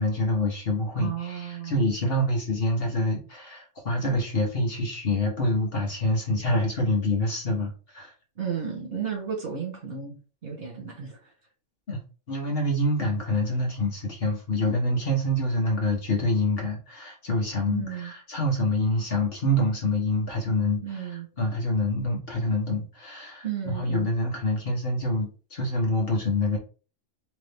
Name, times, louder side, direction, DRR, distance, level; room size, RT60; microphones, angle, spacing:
voice 1, 0.0-8.1 11.9-12.0 12.3-26.6, left 1 dB, 50° left, 0 dB, 1.4 m, -26 dB
voice 2, 1.0-1.9 8.4-11.3 17.7-18.1 20.8-21.3 23.4-24.1, right 8 dB, 50° right, 0 dB, 1.8 m, -33 dB
3.9 x 3.4 x 3.4 m, 0.36 s
omnidirectional pair, 1.3 m